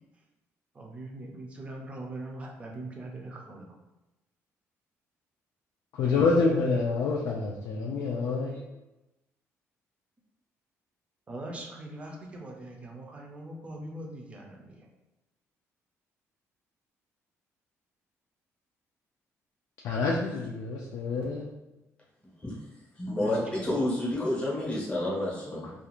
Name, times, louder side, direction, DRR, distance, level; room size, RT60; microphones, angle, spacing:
voice 1, 0.8-3.8 11.3-14.9 23.2-23.8, right 2 dB, 20° right, 0 dB, 0.5 m, -41 dB
voice 2, 5.9-8.6 19.8-21.5, left 4 dB, 70° left, -2 dB, 0.4 m, -27 dB
voice 3, 23.0-25.7, left 1 dB, 20° left, -4 dB, 0.8 m, -30 dB
2.4 x 2.4 x 2.9 m, 0.99 s
cardioid pair, 155°, 6 cm